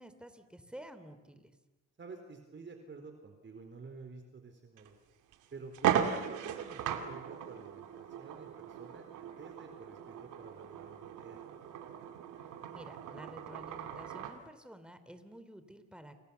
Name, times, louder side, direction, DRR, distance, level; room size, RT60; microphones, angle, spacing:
voice 1, 0.0-1.5 12.7-16.2, equal, 5° right, 9 dB, 3.5 m, -51 dB
voice 2, 2.0-5.0 5.5-11.4, right 4 dB, 40° right, 5 dB, 4.1 m, -50 dB
sound 1, 4.8-4.9 5.3-5.4 5.7-14.4, right 9 dB, 90° right, 2.6 m, -37 dB
29.0 x 28.5 x 7.1 m, 1.1 s
cardioid pair, 90°, 30 cm